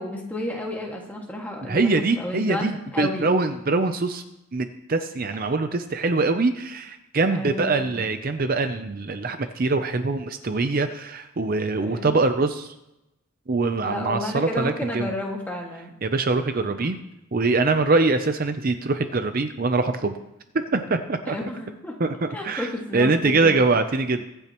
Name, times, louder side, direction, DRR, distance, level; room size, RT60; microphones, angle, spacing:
voice 1, 0.0-3.4 7.3-8.0 11.8-12.2 13.8-15.9 16.8-16.9 17.6-17.7 21.3-21.9 22.3-23.6, left 1 dB, 10° left, -1 dB, 1.9 m, -32 dB
voice 2, 1.7-4.2 4.5-12.7 13.5-15.1 16.0-17.0 17.3-20.2 20.5-21.4 22.0-24.3, right 3 dB, 40° right, 8 dB, 0.6 m, -23 dB
23.5 x 8.9 x 3.0 m, 0.91 s
head